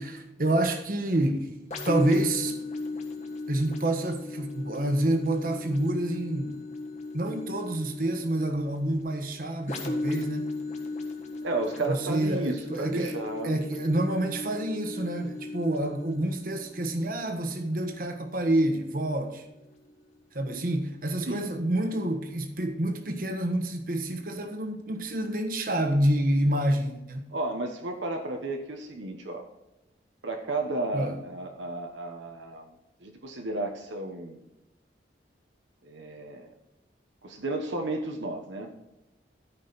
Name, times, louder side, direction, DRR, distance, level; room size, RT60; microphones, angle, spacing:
voice 1, 0.0-1.5 1.8-2.5 3.5-6.6 7.1-10.5 11.9-13.2 13.4-19.5 20.3-27.3 30.9-31.2, right 1 dB, 50° right, 5 dB, 1.3 m, -28 dB
sound 1, 1.7-19.2 19.8-19.9, left 3 dB, 40° left, 1.6 m, -37 dB
voice 2, 11.4-13.5 21.3-21.5 27.3-29.4 30.2-32.7 33.0-34.4 35.8-36.5 37.2-38.7, right 2 dB, 90° right, 2 dB, 1.2 m, -33 dB
14.0 x 5.3 x 4.1 m, 0.95 s
head